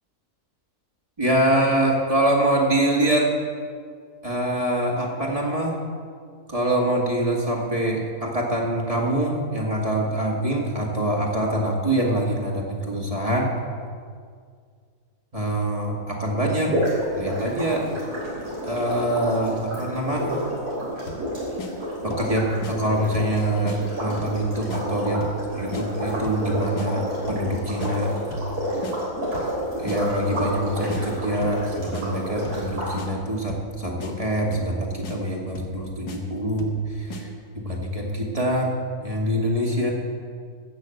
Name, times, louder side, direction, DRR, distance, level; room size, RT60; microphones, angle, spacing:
voice 1, 1.2-3.3 4.2-5.8 6.5-13.5 15.3-16.8 17.1-17.9 18.6-20.3 22.0-25.3 25.5-28.1 29.8-37.3 37.6-38.7 39.0-39.9, right 1 dB, 20° right, -1 dB, 2.0 m, -24 dB
sound 1, 16.6-32.9, equal, 80° right, 4.3 m, -30 dB
sound 2, 21.1-21.3 21.6-21.7 22.1-22.3 22.6-22.7 23.1-23.4 23.7-23.8 24.2-24.4 24.7-24.8 25.2-25.4 25.7-25.9 26.2-26.5 26.8-26.9 27.3-27.5 27.8-27.9 28.3-28.5 28.8-29.0 29.3-29.6 29.9-30.0 30.4-30.6 30.9-31.0 31.4-31.6 31.9-32.1 32.4-32.7 33.0-33.1 33.5-33.7 34.0-34.1 34.5-34.7 35.0-35.2 35.6-35.8 36.1-36.2 36.6-36.8 37.1-37.2, left 3 dB, 85° left, 1.8 m, -36 dB
15.0 x 6.3 x 7.7 m, 2.1 s
omnidirectional pair, 1.6 m